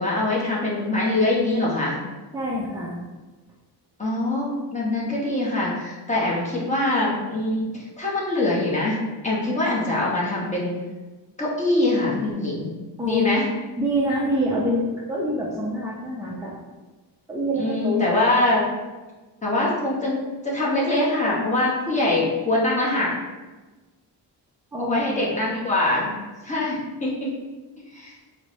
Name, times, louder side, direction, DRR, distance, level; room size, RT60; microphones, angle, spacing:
voice 1, 0.0-2.0 4.0-9.0 9.2-10.7 11.4-12.7 13.0-13.4 17.6-18.7 19.4-23.1 24.8-26.1 26.4-27.3 27.9-28.1, left 2 dB, 15° left, -5 dB, 0.8 m, -23 dB
voice 2, 2.3-3.0 13.0-13.2 13.8-16.5 17.3-18.0 24.7-25.7, equal, 10° right, -6 dB, 0.4 m, -26 dB
4.4 x 2.1 x 2.6 m, 1.2 s
cardioid pair, 110°, 44 cm